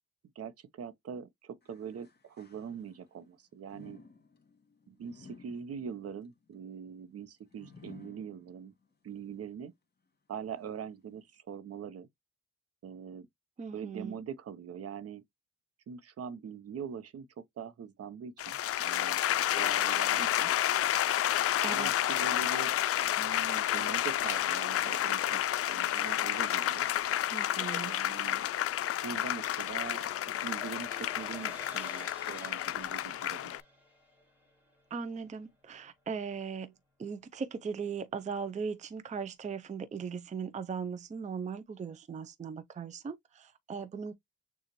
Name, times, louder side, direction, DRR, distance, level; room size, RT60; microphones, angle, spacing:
voice 1, 0.3-4.0 4.9-8.7 9.0-9.7 10.3-12.1 12.8-13.3 13.7-15.2 15.9-20.5 21.4-22.7 23.2-26.9 27.8-28.4 29.0-33.5, right 7 dB, 50° right, 0.8 m, -43 dB
sound 1, 1.6-3.2 3.7-8.9 9.4-9.5 10.4-10.5, left 5 dB, 35° left, 2.1 m, -56 dB
voice 2, 13.6-14.2 21.6-22.1 27.3-27.9 34.9-36.7 37.0-44.1, right 6 dB, 25° right, 0.5 m, -38 dB
sound 2, 18.4-33.6, left 12 dB, 50° left, 0.5 m, -30 dB
sound 3, 29.5-35.4, left 2 dB, 5° right, 2.3 m, -52 dB
6.5 x 2.4 x 3.0 m
cardioid pair, 90°, 30 cm